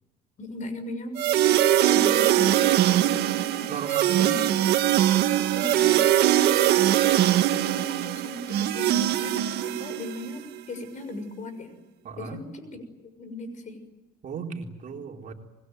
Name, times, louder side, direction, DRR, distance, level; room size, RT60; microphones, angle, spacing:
voice 1, 0.4-1.6 1.9-4.6 5.5-11.7 12.2-13.8, left 1 dB, 45° left, 10 dB, 6.5 m, -38 dB
sound 1, 1.2-10.3, right 12 dB, 75° right, 1.7 m, -22 dB
voice 2, 3.7-4.3 12.0-12.4 14.2-15.3, right 6 dB, 50° right, 2 dB, 3.9 m, -35 dB
26.0 x 22.0 x 9.5 m, 1.0 s
cardioid pair, 110°, 17 cm